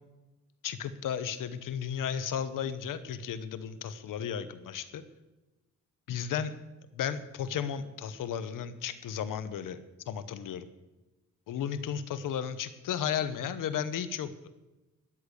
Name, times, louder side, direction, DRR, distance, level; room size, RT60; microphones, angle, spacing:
voice 1, 0.6-5.0 6.1-6.5 6.9-9.8 10.1-10.7 11.5-14.3, left 8 dB, 90° left, 12 dB, 1.0 m, -34 dB
13.5 x 10.5 x 6.7 m, 1.1 s
cardioid pair, 105°, 31 cm